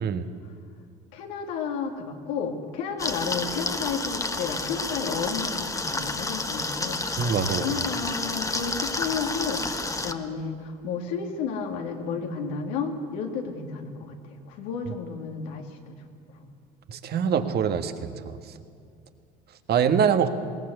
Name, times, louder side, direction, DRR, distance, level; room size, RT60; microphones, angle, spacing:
voice 1, 1.1-14.2 14.5-15.6, left 5 dB, 80° left, 2 dB, 2.6 m, -32 dB
sound 1, 3.0-10.1, left 2 dB, 15° left, 1.4 m, -30 dB
voice 2, 7.2-7.8 16.9-18.4 19.7-20.3, right 7 dB, 50° right, 8 dB, 1.7 m, -24 dB
21.0 x 18.0 x 8.1 m, 2.3 s
supercardioid pair, 80°, 20 cm